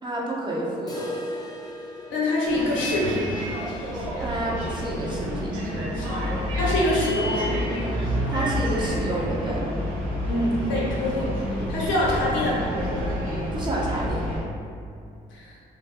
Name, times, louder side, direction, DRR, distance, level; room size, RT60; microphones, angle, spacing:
voice 1, 0.0-1.1 4.2-5.5 8.3-9.6 13.5-14.2, right 1 dB, 25° right, -5 dB, 0.7 m, -29 dB
sound 1, 0.9-6.7 7.0-7.1 7.4-7.5 8.0-8.1 9.0-9.1, left 1 dB, 20° left, 0.5 m, -41 dB
voice 2, 2.1-3.4 5.9-6.1 6.6-7.5 10.3-11.3 11.7-12.7 15.3-15.6, left 1 dB, 70° left, -4 dB, 0.7 m, -25 dB
Bus, 2.5-14.4, equal, 80° right, 1.0 m, -28 dB
2.6 x 2.0 x 3.5 m, 2.3 s
hypercardioid pair, 50°, 20 cm